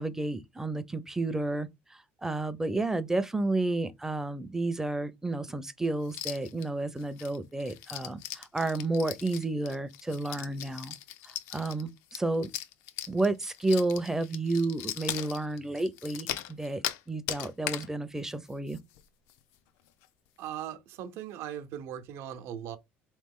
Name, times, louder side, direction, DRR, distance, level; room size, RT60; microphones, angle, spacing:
voice 1, 0.0-10.9 11.2-12.5 13.1-16.8 17.1-18.8, right 2 dB, 10° right, 0.5 m, -31 dB
sound 1, 6.1-6.6 7.0-17.0 17.3-17.9 18.3-18.4 18.7-19.0 19.3-19.4 19.9-20.1, left 12 dB, 80° left, 0.6 m, -39 dB
voice 2, 20.4-22.8, right 10 dB, 70° right, 0.7 m, -39 dB
3.7 x 3.1 x 3.6 m
cardioid pair, 115°, 5 cm